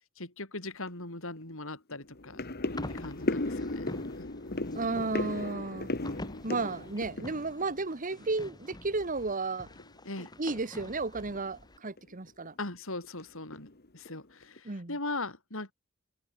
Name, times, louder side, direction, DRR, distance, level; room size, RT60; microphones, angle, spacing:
voice 1, 0.2-2.4 2.9-4.3 10.0-10.3 12.6-15.7, left 2 dB, 65° left, 7.1 m, -40 dB
sound 1, 0.9-1.0 1.4-1.5 1.9-8.5 8.7-9.3 9.7-9.9 10.2-10.3 10.8-11.0 11.3-11.5 12.0-12.5 13.0-13.2 13.5-14.2 14.6-14.7, left 2 dB, 45° left, 1.7 m, -36 dB
sound 2, 2.7-11.8, left 1 dB, 20° left, 2.0 m, -47 dB
voice 2, 4.7-5.9 6.4-9.7 10.4-12.5 14.6-14.9, right 3 dB, 40° right, 1.3 m, -33 dB
head